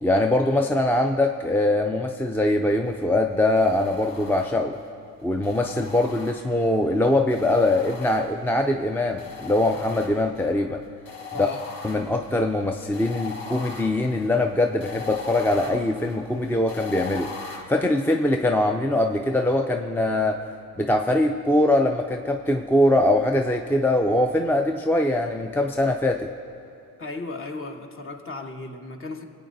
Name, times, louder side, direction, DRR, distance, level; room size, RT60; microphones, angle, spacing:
voice 1, 0.0-4.8 5.2-10.8 11.4-11.5 11.8-17.3 17.7-20.4 20.8-26.3, left 1 dB, 5° left, 4 dB, 0.4 m, -22 dB
sound 1, 3.6-4.8 5.4-6.8 7.3-8.6 9.2-10.5 11.0-17.6, left 5 dB, 75° left, 1.2 m, -39 dB
voice 2, 11.3-11.6 27.0-29.2, left 3 dB, 40° left, 4 dB, 1.2 m, -35 dB
24.0 x 8.7 x 2.6 m, 2.7 s
cardioid pair, 85°, 34 cm